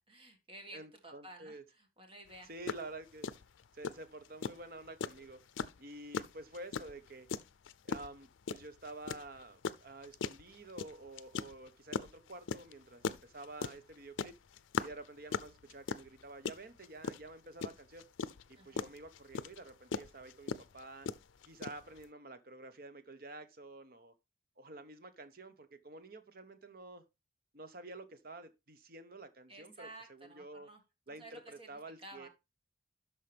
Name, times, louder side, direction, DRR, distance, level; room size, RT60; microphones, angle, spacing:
voice 1, 0.0-2.5 18.6-18.9 29.5-30.8 31.1-32.3, right 1 dB, 30° right, 1.9 m, -53 dB
voice 2, 0.7-1.6 2.4-3.3 3.7-5.4 5.8-7.3 7.8-14.3 14.8-18.0 18.5-21.1 21.5-24.1 24.6-27.0 27.5-30.7 31.1-32.3, right 2 dB, 50° right, 1.0 m, -49 dB
sound 1, 2.3-2.4 2.7-2.9 3.2-22.0, left 5 dB, 85° left, 0.5 m, -39 dB
12.5 x 4.6 x 3.4 m
head